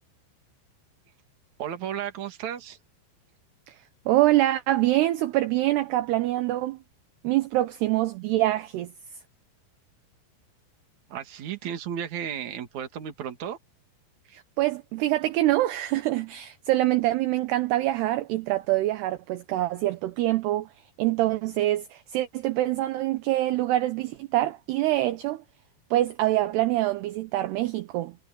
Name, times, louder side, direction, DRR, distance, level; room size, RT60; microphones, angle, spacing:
voice 1, 1.6-2.8 11.1-13.6, right 9 dB, 50° right, 2.8 m, -34 dB
voice 2, 4.1-6.8 7.2-8.9 14.3-20.7 21.0-25.4 25.9-28.2, right 16 dB, 75° right, 2.6 m, -25 dB
omnidirectional pair, 5.6 m